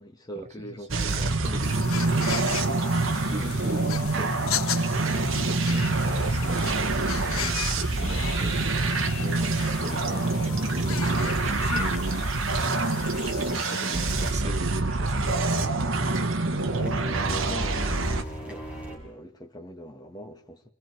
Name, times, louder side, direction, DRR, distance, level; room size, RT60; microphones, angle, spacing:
voice 1, 0.0-1.6 3.3-3.5 3.8-4.0 9.2-9.5 16.6-18.1 18.4-20.6, equal, 20° left, 1.8 m, -42 dB
voice 2, 0.6-2.6 3.3-17.0, right 2 dB, 30° right, 1.4 m, -40 dB
sound 1, 0.9-18.2, right 3 dB, 60° right, 1.3 m, -26 dB
sound 2, 1.6-14.3, left 9 dB, 75° left, 0.9 m, -37 dB
sound 3, 6.2-19.0, equal, 5° right, 5.6 m, -42 dB
28.0 x 22.0 x 4.8 m
head